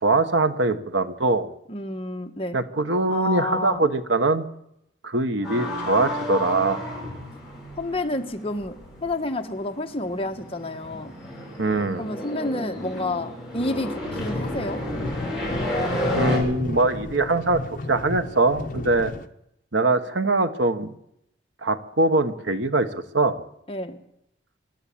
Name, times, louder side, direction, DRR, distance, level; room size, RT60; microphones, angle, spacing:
voice 1, 0.0-1.5 2.5-4.5 5.0-6.8 11.6-12.0 16.1-17.6 17.9-19.1 19.7-20.9 21.6-22.9 23.1-23.4, right 2 dB, 75° right, 9 dB, 1.5 m, -22 dB
voice 2, 1.7-2.6 3.1-3.9 7.8-11.1 12.0-14.8 23.7-24.0, left 2 dB, 30° left, 5 dB, 1.4 m, -29 dB
sound 1, 5.4-16.4, left 1 dB, ahead, 7.7 m, -32 dB
sound 2, 14.2-19.3, left 2 dB, 45° left, 1.2 m, -33 dB
24.5 x 12.5 x 8.7 m, 0.79 s
head